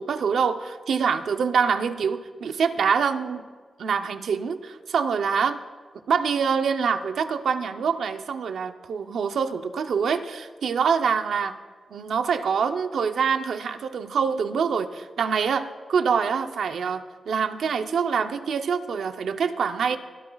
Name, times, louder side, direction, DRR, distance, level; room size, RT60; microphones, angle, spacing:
voice 1, 0.0-3.4 3.8-5.6 6.1-11.6 11.9-20.0, right 6 dB, 85° right, 9 dB, 0.7 m, -25 dB
23.5 x 12.5 x 2.4 m, 1.5 s
cardioid pair, 75°, 0 cm